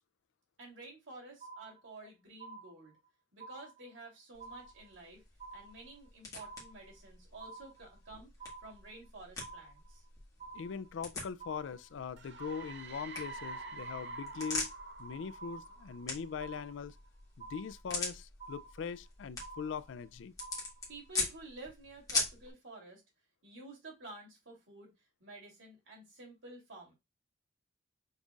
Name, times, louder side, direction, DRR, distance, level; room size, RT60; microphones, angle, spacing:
voice 1, 0.6-2.9 3.3-5.2 5.5-8.3 8.6-10.0 20.9-23.0 23.4-24.9 25.2-26.9, right 2 dB, 85° right, 3.0 m, -51 dB
sound 1, 1.4-2.1 2.4-3.1 3.4-4.1 4.4-5.1 5.4-6.1 6.4-7.1 7.4-8.1 8.4-9.1 9.4-10.1 10.4-11.1 11.4-12.1 12.4-13.1 13.4-14.1 14.4-15.1 15.4-16.1 16.4-17.1 17.4-18.1 18.4-19.1 19.4-20.1 20.4-21.1, right 4 dB, 30° right, 0.8 m, -50 dB
sound 2, 4.3-22.5, left 3 dB, 20° left, 1.5 m, -43 dB
voice 2, 10.5-14.7 15.0-17.0 17.4-20.3, left 6 dB, 75° left, 0.3 m, -41 dB
sound 3, 12.2-16.7, right 3 dB, 60° right, 0.7 m, -47 dB
5.4 x 3.8 x 2.3 m
head